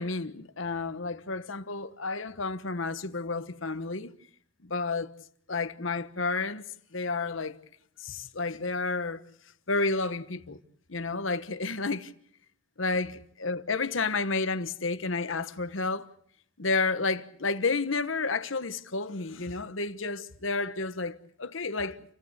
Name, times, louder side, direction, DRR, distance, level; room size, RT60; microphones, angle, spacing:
voice 1, 0.0-4.1 4.6-5.1 5.5-6.6 6.9-7.6 8.0-9.2 9.7-10.6 10.9-12.1 12.8-16.1 16.6-22.0, left 3 dB, 70° left, 1.3 m, -31 dB
29.0 x 16.5 x 8.1 m
head